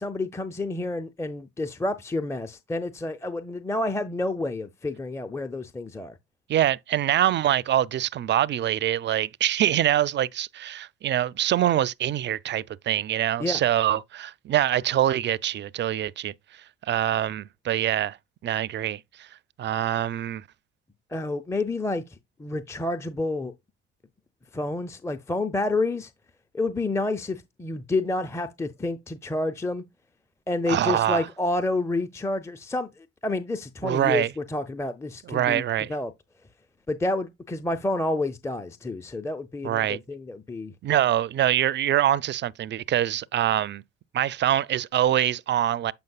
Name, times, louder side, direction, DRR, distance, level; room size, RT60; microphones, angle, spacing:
voice 1, 0.0-6.1 13.4-13.6 21.1-23.5 24.5-26.1 26.5-29.8 30.5-35.6 35.9-36.1 36.9-40.7, left 2 dB, 10° left, 0.6 m, -29 dB
voice 2, 6.5-16.3 16.8-18.2 18.4-19.3 19.6-20.4 30.7-31.3 33.8-34.3 35.3-35.9 39.6-40.0 40.8-43.8 44.1-45.9, right 11 dB, 35° right, 0.4 m, -24 dB
7.7 x 5.2 x 2.3 m
hypercardioid pair, 55°, 31 cm